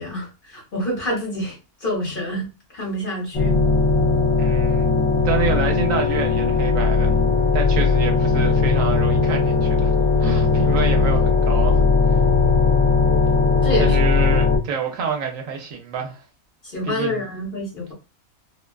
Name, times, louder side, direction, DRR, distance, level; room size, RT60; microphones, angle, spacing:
voice 1, 0.0-2.5 2.7-3.6 13.6-14.0 16.6-17.9, equal, 40° left, 1.1 m, -27 dB
sound 1, 3.3-14.6, left 4 dB, 65° left, 1.1 m, -18 dB
voice 2, 4.4-4.9 5.2-7.1 7.5-9.9 10.2-11.8 13.8-16.2 16.8-17.3, right 6 dB, 75° right, 0.9 m, -27 dB
2.5 x 2.2 x 2.2 m
omnidirectional pair, 1.5 m